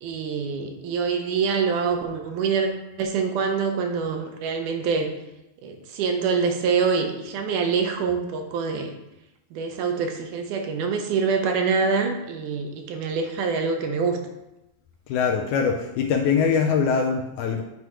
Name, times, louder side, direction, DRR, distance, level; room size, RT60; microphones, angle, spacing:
voice 1, 0.0-2.7 3.0-5.1 5.6-8.9 9.5-14.2, right 5 dB, 75° right, 4 dB, 2.1 m, -25 dB
voice 2, 15.1-17.6, left 6 dB, 80° left, 3 dB, 1.8 m, -22 dB
9.4 x 3.2 x 4.8 m, 0.93 s
omnidirectional pair, 3.9 m